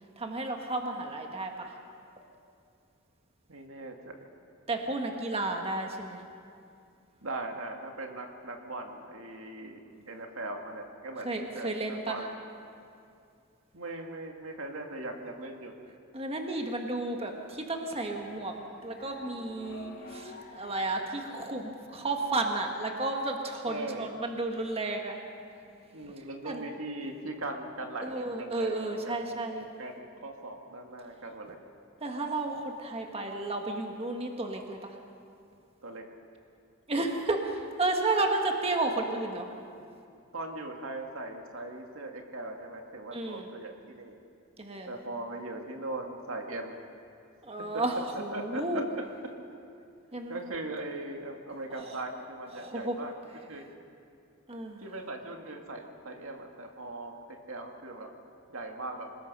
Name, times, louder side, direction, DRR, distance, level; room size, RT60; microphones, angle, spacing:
voice 1, 0.2-1.7 4.7-6.2 9.9-10.0 11.2-12.2 16.1-18.6 18.8-25.2 26.4-26.6 28.0-29.7 32.0-35.0 36.9-39.5 43.1-43.5 44.6-44.9 47.4-48.8 50.1-50.4 51.8-52.0 52.5-53.0 54.5-54.8, right 2 dB, 30° right, 2 dB, 1.6 m, -32 dB
voice 2, 3.5-4.2 7.2-9.8 10.1-12.4 13.7-15.8 21.5-21.6 22.0-22.1 23.7-24.1 25.9-28.8 29.1-29.4 29.8-31.6 35.8-36.1 39.8-39.9 40.3-44.2 44.9-46.8 47.7-47.8 48.1-48.8 50.3-53.1 53.5-53.7 54.8-58.1 58.5-59.1, right 2 dB, 80° right, 3 dB, 2.3 m, -39 dB
sound 1, 18.0-23.0, left 2 dB, 55° left, 2.7 m, -49 dB
27.0 x 20.0 x 5.6 m, 2.5 s
head